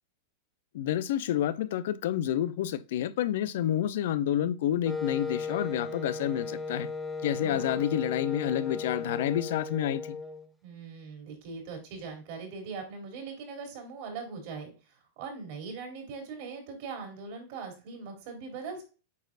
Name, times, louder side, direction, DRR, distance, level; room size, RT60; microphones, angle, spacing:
voice 1, 0.7-6.9 7.2-10.2, left 11 dB, 70° left, 0.6 m, -29 dB
Wind instrument woodwind instrument, 4.9-10.5, left 4 dB, 5° left, 0.9 m, -36 dB
voice 2, 7.4-7.8 10.6-18.8, right 5 dB, 60° right, 3.4 m, -41 dB
8.4 x 4.5 x 2.5 m
hypercardioid pair, 130°, 0 cm